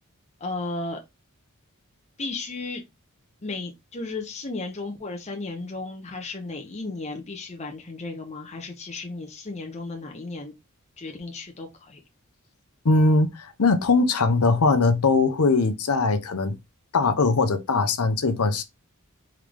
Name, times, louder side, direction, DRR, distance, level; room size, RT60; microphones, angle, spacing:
voice 1, 0.4-1.0 2.2-2.8 3.4-10.5 11.0-12.0, left 3 dB, 30° left, 0.8 m, -34 dB
voice 2, 12.8-16.6 16.9-18.6, left 3 dB, 80° left, 0.8 m, -21 dB
3.8 x 3.3 x 3.3 m
head